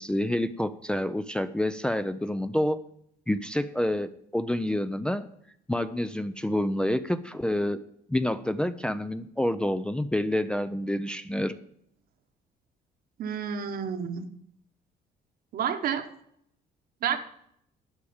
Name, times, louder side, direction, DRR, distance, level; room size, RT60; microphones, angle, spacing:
voice 1, 0.0-2.8 3.3-5.3 5.7-7.8 8.1-11.5, left 1 dB, 5° left, 0.5 m, -28 dB
voice 2, 13.2-14.3 15.5-16.1 17.0-17.2, right 8 dB, 60° right, 1.2 m, -29 dB
12.0 x 4.9 x 8.6 m
cardioid pair, 110°, 17 cm